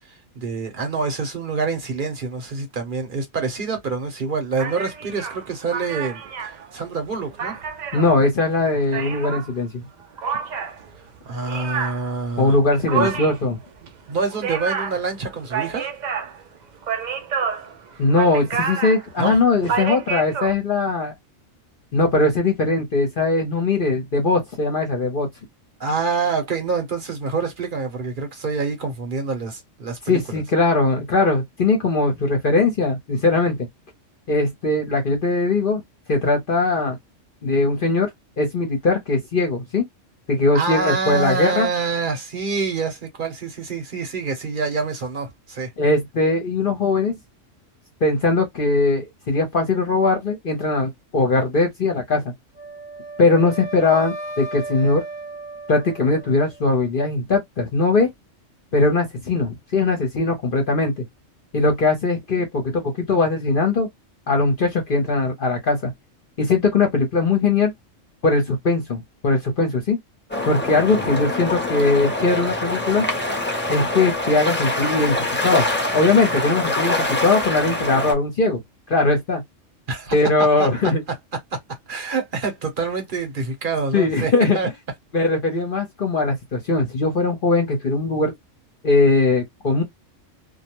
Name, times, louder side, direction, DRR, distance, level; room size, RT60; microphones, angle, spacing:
voice 1, 0.1-6.2 6.7-7.6 11.2-12.6 12.9-13.2 14.1-15.9 19.2-19.4 25.8-30.4 40.5-45.7 71.1-71.2 79.9-80.1 80.6-80.7 81.5-81.6 81.9-84.7, right 4 dB, 45° right, 0.9 m, -26 dB
sound 1, 4.6-9.5 10.2-20.5, right 6 dB, 85° right, 0.4 m, -29 dB
voice 2, 7.9-9.8 12.4-13.5 18.0-21.1 21.9-25.3 30.1-33.7 34.3-35.8 36.1-37.0 37.4-38.1 38.4-39.8 40.3-41.7 45.8-47.1 48.0-52.3 53.2-55.0 55.7-58.1 58.7-61.0 61.5-63.9 64.3-65.9 66.4-67.7 68.2-70.0 70.5-73.1 73.7-75.7 75.9-78.6 78.9-79.4 80.1-81.0 83.9-84.6 85.1-88.3 88.8-89.8, left 3 dB, 50° left, 0.8 m, -20 dB
Wind instrument woodwind instrument, 52.6-56.7, right 3 dB, 5° right, 0.8 m, -35 dB
sound 2, 70.3-78.1, left 1 dB, 15° left, 0.4 m, -24 dB
2.3 x 2.1 x 2.9 m
omnidirectional pair, 1.3 m